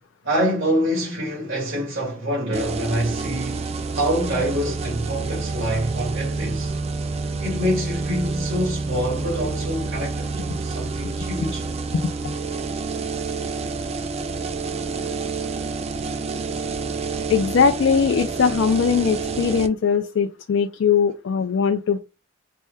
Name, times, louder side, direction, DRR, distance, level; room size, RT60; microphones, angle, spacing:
voice 1, 0.2-6.7 7.4-11.7, equal, 75° right, 2.0 m, -26 dB
sound 1, 2.5-19.7, right 4 dB, 30° right, 0.3 m, -28 dB
voice 2, 11.9-12.4 17.3-22.0, left 6 dB, 65° left, 0.3 m, -20 dB
4.3 x 2.1 x 3.4 m
head